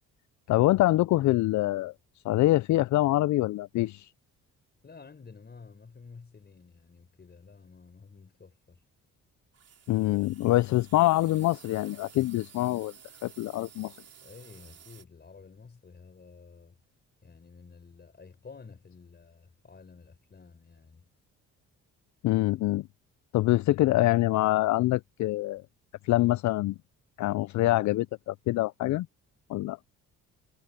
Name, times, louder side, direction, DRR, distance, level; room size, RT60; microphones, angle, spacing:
voice 1, 0.5-1.9 2.2-4.1 9.9-12.9 13.2-13.9 22.2-22.9 23.3-25.6 26.0-26.8 27.2-29.1 29.5-29.8, left 17 dB, 70° left, 0.5 m, -25 dB
voice 2, 4.8-8.8 14.2-16.8 17.2-21.1, left 5 dB, 35° left, 4.7 m, -51 dB
sound 1, 9.5-15.0, right 8 dB, 55° right, 3.3 m, -54 dB
cardioid pair, 90°, 30 cm